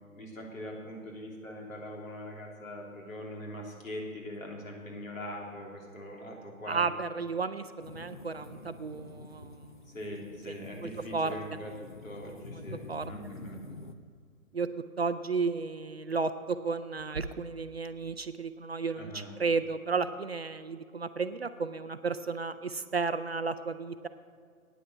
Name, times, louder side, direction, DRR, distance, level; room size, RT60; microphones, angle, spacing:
voice 1, 0.1-6.8 9.9-12.8 13.1-13.6 19.0-19.3, equal, 65° left, -1 dB, 3.3 m, -42 dB
voice 2, 6.7-9.9 10.5-10.6 10.8-11.4 12.5-12.6 12.9-13.1 14.5-14.7 15.0-24.1, right 4 dB, 45° right, 10 dB, 0.5 m, -33 dB
sound 1, 7.8-13.9, left 2 dB, 35° left, 0.5 m, -48 dB
9.4 x 9.2 x 7.6 m, 2.1 s
figure-of-eight pair, 155°, 43 cm